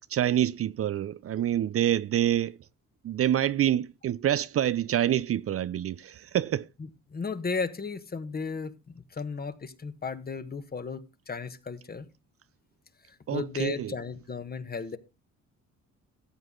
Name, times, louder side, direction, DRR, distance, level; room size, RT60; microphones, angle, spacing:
voice 1, 0.1-2.6 3.0-6.7 13.3-13.9, right 11 dB, 50° right, 0.5 m, -27 dB
voice 2, 7.1-12.0 13.1-15.0, left 5 dB, 30° left, 1.4 m, -35 dB
14.5 x 7.9 x 3.8 m
cardioid pair, 90°, 30 cm